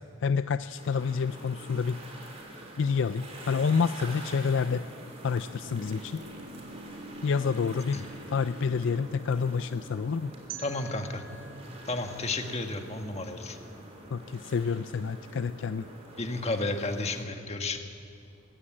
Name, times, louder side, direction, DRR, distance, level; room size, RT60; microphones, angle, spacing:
voice 1, 0.2-2.0 2.8-4.9 5.2-6.2 7.2-8.0 8.3-10.3 14.1-15.9, left 5 dB, 60° left, 12 dB, 0.4 m, -28 dB
sound 1, 0.8-17.2, right 1 dB, 30° right, 3.4 m, -47 dB
sound 2, 4.8-14.7, equal, 50° right, 1.2 m, -49 dB
sound 3, 10.5-13.4, right 8 dB, 85° right, 2.3 m, -48 dB
voice 2, 10.6-11.2 11.9-13.6 16.2-17.8, left 2 dB, 30° left, 5 dB, 1.4 m, -32 dB
23.0 x 15.0 x 8.8 m, 2.5 s
head